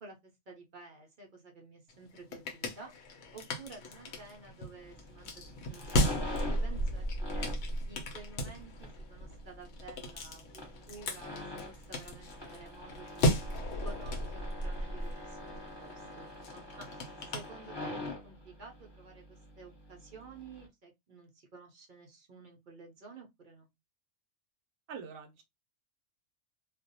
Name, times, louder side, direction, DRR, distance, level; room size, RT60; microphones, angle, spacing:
voice 1, 0.0-5.3 5.7-11.4 11.7-13.5 13.8-16.9 17.2-23.7, right 3 dB, 50° right, 0.6 m, -52 dB
sound 1, 1.9-18.1, equal, 70° left, 0.9 m, -36 dB
sound 2, 4.8-20.7, left 2 dB, 20° left, 1.1 m, -45 dB
voice 2, 16.5-16.8 24.9-25.4, right 6 dB, 85° right, 1.0 m, -46 dB
2.3 x 2.2 x 2.6 m
omnidirectional pair, 1.4 m